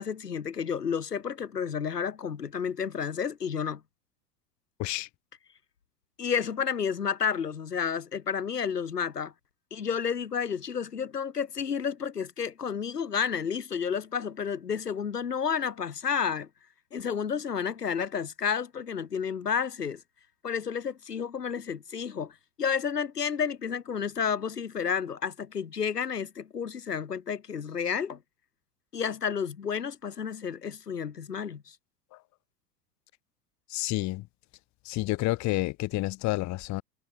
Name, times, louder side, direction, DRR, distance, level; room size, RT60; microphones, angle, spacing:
voice 1, 0.0-3.8 6.2-9.3 9.7-16.5 16.9-20.0 20.4-28.2 28.9-31.7, left 7 dB, 80° left, 1.6 m, -31 dB
voice 2, 33.7-34.2 34.8-36.8, left 19 dB, 35° left, 1.3 m, -29 dB
figure-of-eight pair, 80°, 47 cm